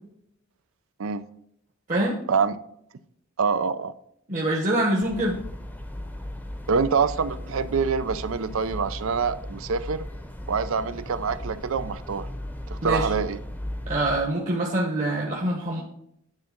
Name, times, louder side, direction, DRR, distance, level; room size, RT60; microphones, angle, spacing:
voice 1, 3.4-3.9 6.7-10.1 10.5-12.3 12.8-13.4, right 5 dB, 80° right, 14 dB, 0.5 m, -25 dB
voice 2, 4.3-5.4 12.8-13.1 13.9-15.8, right 1 dB, 40° right, -2 dB, 1.0 m, -25 dB
sound 1, 5.0-14.3, left 1 dB, 10° left, 0.7 m, -36 dB
9.7 x 3.7 x 5.9 m, 0.72 s
head